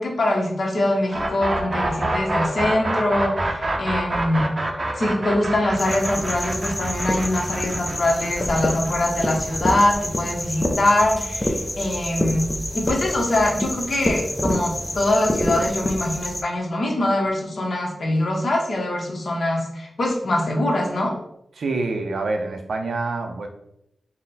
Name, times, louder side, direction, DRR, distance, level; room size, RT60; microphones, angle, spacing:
voice 1, 0.0-4.5 4.9-21.1, left 1 dB, 55° left, -1 dB, 0.9 m, -23 dB
sound 1, 1.1-10.9, right 1 dB, 35° right, 0.6 m, -27 dB
sound 2, 5.8-16.4, left 1 dB, 15° left, 0.5 m, -27 dB
voice 2, 21.6-23.5, right 3 dB, 80° right, 5 dB, 0.5 m, -26 dB
4.0 x 2.1 x 4.0 m, 0.79 s
wide cardioid pair, 115°, 0 cm